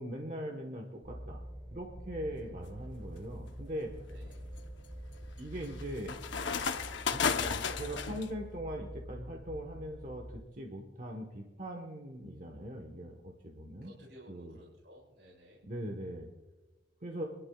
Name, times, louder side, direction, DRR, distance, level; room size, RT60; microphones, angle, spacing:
voice 1, 0.0-1.4 1.7-3.9 5.4-6.2 7.1-13.9 14.3-14.6 15.6-16.3 17.0-17.3, equal, 45° right, 2 dB, 1.1 m, -41 dB
sound 1, 1.0-10.4, right 1 dB, 15° right, 1.7 m, -46 dB
voice 2, 2.2-2.6 4.1-4.5 13.8-15.6, equal, 70° right, -5 dB, 3.8 m, -56 dB
sound 2, 2.7-3.1 3.6-8.3, left 6 dB, 80° left, 0.8 m, -35 dB
27.0 x 11.5 x 2.3 m, 1.1 s
head